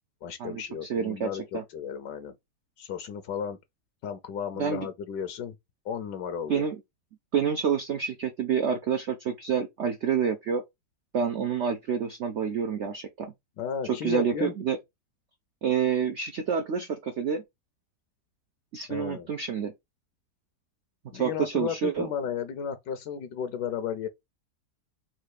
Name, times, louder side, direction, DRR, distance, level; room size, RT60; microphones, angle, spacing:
voice 1, 0.2-2.3 2.8-3.6 4.0-5.5 5.8-6.6 13.6-14.5 18.9-19.3 21.1-24.1, left 7 dB, 80° left, 1.3 m, -34 dB
voice 2, 0.9-1.6 4.5-4.9 6.5-6.8 7.3-10.6 11.1-13.3 13.9-14.8 15.6-17.4 18.7-19.7 21.1-22.1, right 7 dB, 70° right, 0.6 m, -28 dB
4.3 x 2.4 x 4.7 m
omnidirectional pair, 1.9 m